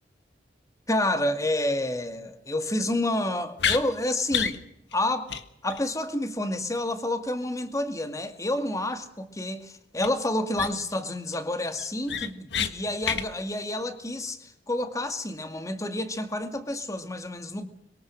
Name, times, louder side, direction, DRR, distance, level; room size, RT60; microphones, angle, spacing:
voice 1, 0.9-4.6 4.9-5.3 5.6-17.7, left 1 dB, 20° left, 9 dB, 2.1 m, -29 dB
sound 1, 3.6-3.8 4.3-4.6 4.9-5.0 5.3-5.4 5.7-5.8 10.0-10.1 10.6-10.9 11.3-11.4 11.8-12.7 13.0-13.3, left 7 dB, 70° left, 1.7 m, -28 dB
25.5 x 23.0 x 6.3 m, 0.74 s
head